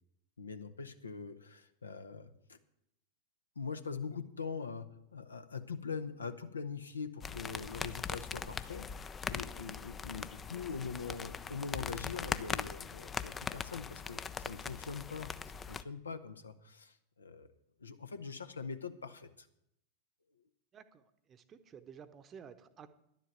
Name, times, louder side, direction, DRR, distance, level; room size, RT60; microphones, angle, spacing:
voice 1, 0.4-2.6 3.6-8.9 9.2-15.4 15.7-17.5 17.8-19.5, left 5 dB, 75° left, 10 dB, 0.9 m, -43 dB
sound 1, 7.2-15.8, left 6 dB, 20° left, 0.5 m, -41 dB
voice 2, 20.7-21.0 21.3-22.9, right 7 dB, 25° right, 11 dB, 0.9 m, -53 dB
11.0 x 7.7 x 9.1 m, 0.79 s
figure-of-eight pair, 90°, 0 cm